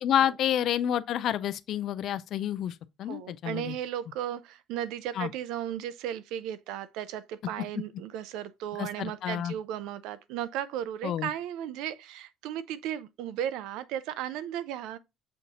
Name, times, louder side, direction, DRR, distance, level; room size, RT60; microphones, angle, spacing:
voice 1, 0.0-3.7 5.2-5.3 8.8-9.5 11.0-11.3, left 10 dB, 55° left, 0.3 m, -29 dB
voice 2, 3.1-15.0, right 11 dB, 85° right, 0.4 m, -35 dB
6.4 x 2.6 x 2.8 m
cardioid pair, 140°, 0 cm